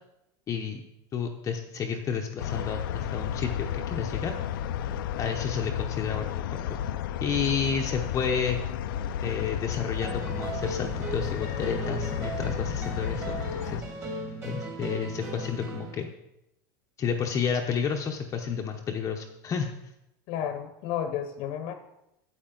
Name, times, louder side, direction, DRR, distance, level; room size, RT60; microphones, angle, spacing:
voice 1, 0.5-0.8 1.1-4.3 5.2-6.8 7.2-8.6 9.2-13.8 14.4-16.1 17.0-19.7, left 6 dB, 25° left, 2 dB, 0.7 m, -31 dB
sound 1, 2.4-13.8, left 9 dB, 85° left, 0.5 m, -32 dB
sound 2, 10.0-16.0, right 3 dB, 25° right, 2.0 m, -37 dB
voice 2, 20.3-21.7, left 9 dB, 55° left, 8 dB, 0.8 m, -32 dB
8.7 x 8.6 x 3.8 m, 0.85 s
supercardioid pair, 140°, 11 cm